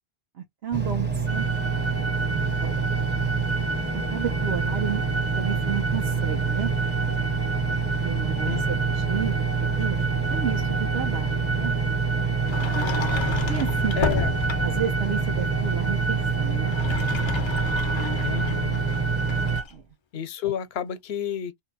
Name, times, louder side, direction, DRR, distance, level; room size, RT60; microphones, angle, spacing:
voice 1, 0.3-3.0 3.9-5.0 5.4-6.7 8.0-9.4 9.8-11.7 13.5-14.0 14.6-16.8 19.7-19.8, right 8 dB, 85° right, 1.0 m, -32 dB
Engine, 0.7-19.6, right 5 dB, 15° right, 0.5 m, -26 dB
sound 1, 1.3-19.6, right 3 dB, 50° right, 0.7 m, -33 dB
Sliding door, 12.4-14.9 16.5-19.7, left 5 dB, 45° left, 0.4 m, -31 dB
voice 2, 14.0-14.3 18.2-18.8 20.1-21.6, left 8 dB, 80° left, 0.8 m, -30 dB
2.7 x 2.2 x 3.9 m
omnidirectional pair, 1.0 m